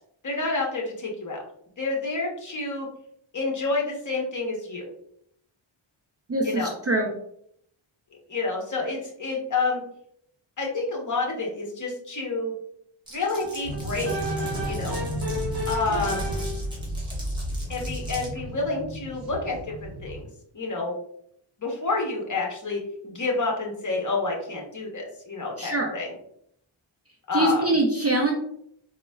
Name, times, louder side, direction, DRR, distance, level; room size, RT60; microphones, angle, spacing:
voice 1, 0.2-1.4 1.8-2.9 3.3-4.9 6.4-6.7 8.3-9.8 10.6-12.5 13.1-14.2 14.6-15.0 15.7-16.3 17.7-19.6 19.8-20.3 20.5-20.9 21.6-26.1 27.3-27.7, left 3 dB, 40° left, -1 dB, 0.8 m, -29 dB
voice 2, 6.3-7.1 25.6-25.9 27.3-28.3, right 2 dB, 35° right, 0 dB, 0.4 m, -23 dB
Glass, 13.1-18.3, right 1 dB, 10° right, 1.0 m, -43 dB
sound 1, 13.4-16.7, equal, 55° right, 0.9 m, -32 dB
sound 2, 13.6-20.2, equal, 90° right, 0.9 m, -33 dB
3.8 x 2.1 x 2.2 m, 0.71 s
wide cardioid pair, 85°, 49 cm